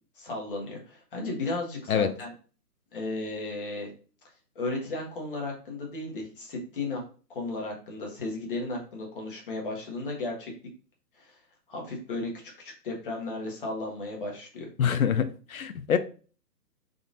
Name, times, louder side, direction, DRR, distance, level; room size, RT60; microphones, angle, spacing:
voice 1, 0.2-2.3 2.9-3.9 4.5-7.0 7.3-10.5 11.2-11.3 11.7-12.3 12.6-14.7, left 2 dB, 30° left, 1.2 m, -34 dB
voice 2, 14.8-16.0, left 8 dB, 60° left, 0.5 m, -25 dB
3.8 x 2.5 x 3.8 m
hypercardioid pair, 170°, 49 cm